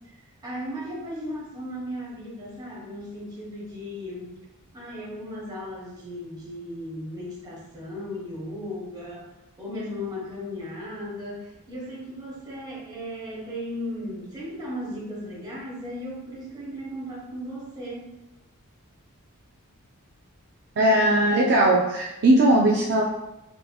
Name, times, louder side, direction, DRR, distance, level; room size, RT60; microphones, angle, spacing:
voice 1, 0.4-4.4 4.7-18.1, equal, 20° right, -5 dB, 1.3 m, -36 dB
voice 2, 20.8-23.0, right 1 dB, 50° right, -2 dB, 0.4 m, -19 dB
5.3 x 2.8 x 2.3 m, 0.94 s
head